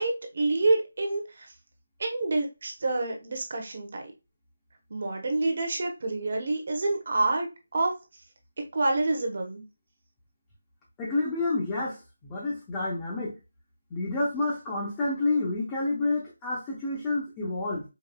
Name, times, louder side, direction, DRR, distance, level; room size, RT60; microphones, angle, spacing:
voice 1, 0.0-1.5 2.0-4.0 4.9-7.5 7.7-7.9 8.7-9.6, right 2 dB, 40° right, 0.8 m, -27 dB
voice 2, 11.0-13.3 13.9-17.8, left 2 dB, 10° left, 0.6 m, -29 dB
4.7 x 2.3 x 2.2 m
figure-of-eight pair, 180°, 0 cm